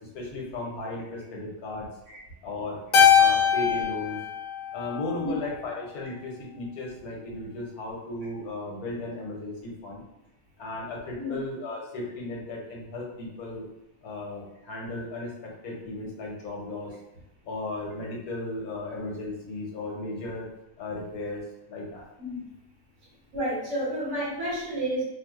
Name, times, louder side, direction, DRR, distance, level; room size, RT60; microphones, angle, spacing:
voice 1, 0.1-1.9 2.4-2.8 3.1-4.2 4.7-10.0 10.6-13.7 14.0-16.9 17.4-20.5 20.8-21.4 21.7-22.1, left 2 dB, 90° left, -2 dB, 1.3 m, -35 dB
Keyboard (musical), 2.9-5.5, left 7 dB, 70° left, 0.9 m, -22 dB
voice 2, 23.3-25.0, right 1 dB, 55° right, -6 dB, 1.4 m, -30 dB
4.2 x 2.1 x 2.3 m, 0.87 s
omnidirectional pair, 1.6 m